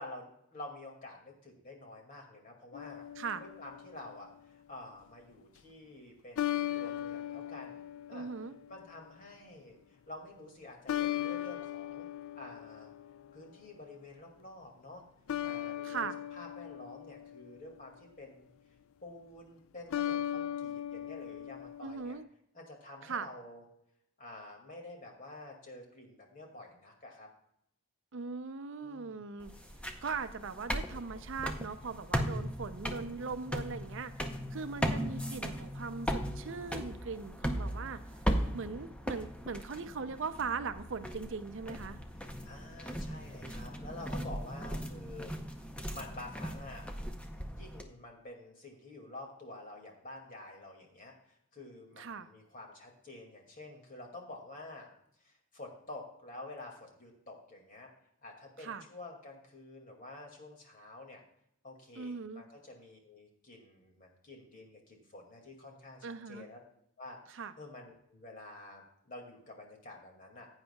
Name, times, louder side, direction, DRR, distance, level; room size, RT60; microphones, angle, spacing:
voice 1, 0.0-3.1 3.4-7.8 8.1-8.3 8.7-12.1 12.4-12.9 13.3-15.0 15.4-18.5 19.0-22.2 22.5-23.6 24.2-27.3 28.8-29.4 42.2-46.9 47.5-54.9 55.2-57.9 58.2-61.2 61.6-66.6 67.0-70.5, left 2 dB, 40° left, 1 dB, 2.2 m, -49 dB
sound 1, 2.7-4.1 6.4-8.8 10.9-13.5 15.3-17.8 19.9-22.2, left 12 dB, 70° left, 0.4 m, -38 dB
voice 2, 8.1-8.5 15.8-16.1 21.8-22.3 23.0-23.3 28.1-29.5 30.0-34.1 34.5-38.0 38.5-42.0 52.0-52.3 58.6-58.8 62.0-62.5 66.0-66.4 67.3-67.5, right 5 dB, 55° right, 10 dB, 0.5 m, -39 dB
sound 2, 29.4-47.8, equal, 5° left, 0.6 m, -38 dB
15.5 x 8.9 x 2.3 m, 0.74 s
head